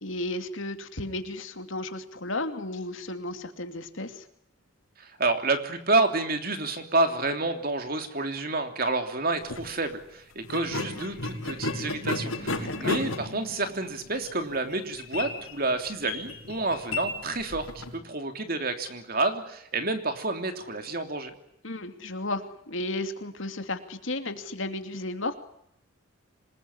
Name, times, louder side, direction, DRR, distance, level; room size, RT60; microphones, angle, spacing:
voice 1, 0.0-4.3 12.4-13.0 21.6-25.4, left 2 dB, 65° left, 7 dB, 2.7 m, -34 dB
voice 2, 5.0-21.3, right 2 dB, 45° right, 6 dB, 3.1 m, -29 dB
sound 1, 9.4-9.7 10.4-17.9, left 2 dB, 85° left, 6.4 m, -34 dB
26.5 x 20.5 x 9.9 m, 0.73 s
head